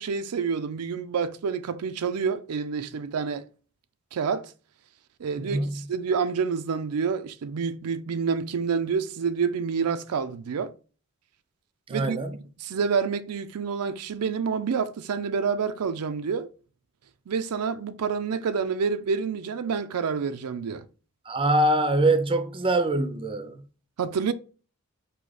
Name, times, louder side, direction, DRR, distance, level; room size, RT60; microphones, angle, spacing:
voice 1, 0.0-3.4 4.1-4.5 5.2-10.7 11.9-12.2 12.6-16.5 17.3-20.8 24.0-24.3, right 6 dB, 80° right, 0.4 m, -28 dB
voice 2, 5.4-5.9 11.9-12.4 21.3-23.6, right 2 dB, 25° right, 0.5 m, -24 dB
4.7 x 2.8 x 4.0 m
head